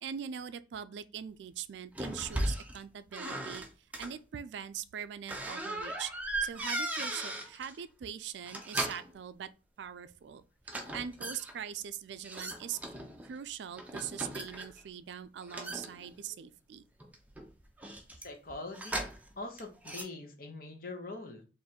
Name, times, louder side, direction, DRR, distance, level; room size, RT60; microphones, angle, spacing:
voice 1, 0.0-6.1 6.4-9.5 9.8-12.8 13.2-16.8, right 8 dB, 70° right, 0.3 m, -42 dB
sound 1, 2.0-2.8 3.1-4.1 5.3-7.8 8.4-9.1 10.7-11.5 12.2-13.3 13.8-14.9 15.5-16.4 17.0-19.3 19.6-20.0, right 1 dB, 10° right, 0.5 m, -37 dB
voice 2, 18.2-19.1 19.4-21.5, left 2 dB, 50° left, 0.9 m, -43 dB
3.7 x 2.6 x 4.2 m
head